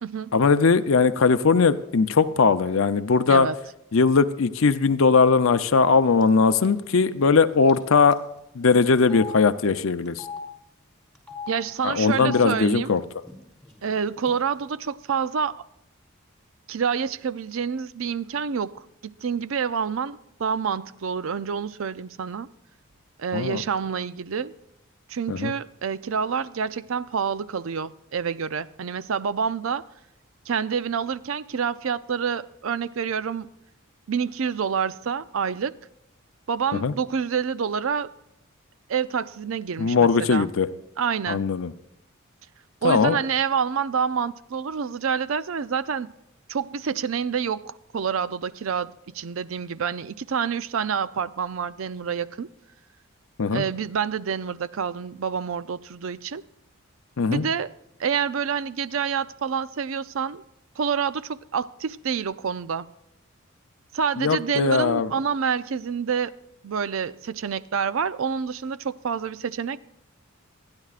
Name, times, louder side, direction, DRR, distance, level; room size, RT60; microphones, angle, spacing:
voice 1, 0.3-3.5 3.9-8.2 8.6-10.2 11.8-13.0 23.3-23.6 25.3-25.5 36.7-36.9 39.8-40.7 41.3-41.7 42.8-43.2 53.4-53.6 57.2-57.5 64.2-65.1, left 4 dB, 65° left, 0.6 m, -20 dB
Telephone, 6.2-6.4 6.6-6.8 7.7-7.8 8.1-8.2 9.0-9.3 10.0-10.4 11.1-11.5 12.1-12.4 13.2-13.3 13.6-14.3, left 6 dB, ahead, 3.2 m, -38 dB
voice 2, 11.5-13.0 13.8-15.6 16.7-18.8 19.2-22.5 23.2-24.5 25.1-29.8 30.5-33.5 34.1-35.7 36.5-38.1 38.9-40.5 41.0-41.4 42.8-46.1 46.5-52.5 53.5-56.4 57.3-57.7 58.0-60.4 60.8-62.9 63.9-66.3 66.6-69.8, right 6 dB, 65° right, 0.5 m, -27 dB
28.5 x 10.5 x 2.5 m
head